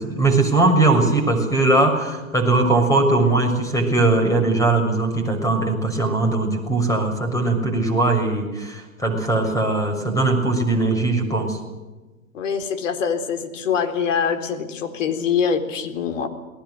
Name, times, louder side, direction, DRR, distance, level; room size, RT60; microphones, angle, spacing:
voice 1, 0.0-11.6, right 2 dB, 10° left, 5 dB, 6.6 m, -20 dB
voice 2, 12.3-16.3, left 6 dB, 60° left, 7 dB, 4.1 m, -24 dB
29.0 x 20.0 x 6.6 m, 1.2 s
hypercardioid pair, 115°, 42 cm